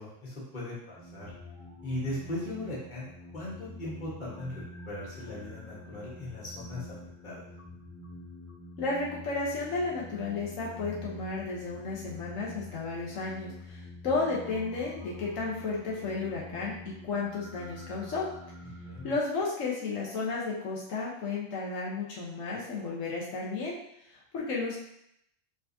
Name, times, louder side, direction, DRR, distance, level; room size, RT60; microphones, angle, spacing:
voice 1, 0.0-1.3 1.8-6.9 7.2-7.4 18.6-19.1, left 1 dB, 40° left, -7 dB, 1.6 m, -38 dB
sound 1, 1.0-19.1, left 1 dB, 40° right, 1.3 m, -46 dB
voice 2, 8.8-18.3 19.0-23.8 24.1-24.8, left 3 dB, 90° left, -5 dB, 1.4 m, -33 dB
4.7 x 3.9 x 2.7 m, 0.75 s
omnidirectional pair, 1.3 m